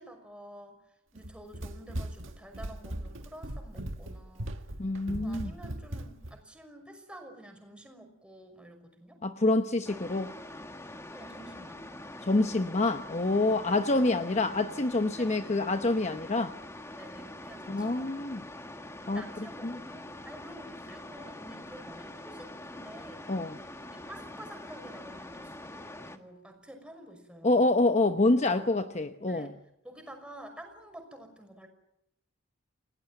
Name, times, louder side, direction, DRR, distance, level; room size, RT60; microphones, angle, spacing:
voice 1, 0.0-4.6 5.2-9.2 11.1-11.8 13.5-14.4 15.2-15.6 17.0-18.2 19.0-23.2 23.9-27.7 28.4-28.7 29.2-29.5 29.8-31.7, right 1 dB, 5° right, 5.8 m, -49 dB
Run, 1.1-6.4, right 1 dB, 65° right, 1.8 m, -39 dB
voice 2, 4.8-5.5 9.2-10.3 12.2-16.5 17.7-18.4 19.1-19.8 23.3-23.6 27.4-29.5, left 2 dB, 35° left, 0.9 m, -27 dB
sound 1, 9.8-26.2, left 1 dB, 15° left, 1.5 m, -44 dB
29.5 x 18.0 x 9.1 m
head